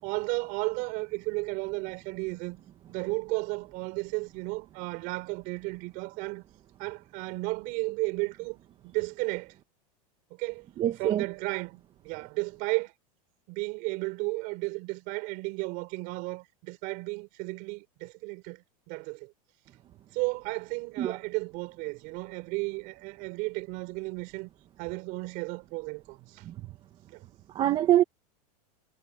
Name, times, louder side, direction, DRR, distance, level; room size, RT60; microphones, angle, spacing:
voice 1, 0.0-2.6 2.9-6.4 6.8-9.5 10.3-10.7 11.0-12.9 13.5-19.3 20.1-24.5 24.8-26.4 27.1-27.2, right 26 dB, 45° right, 5.0 m, -34 dB
voice 2, 10.8-11.3 21.0-21.2 26.4-26.7 27.5-28.0, right 12 dB, 25° right, 1.2 m, -25 dB
supercardioid pair, 160°, 20 cm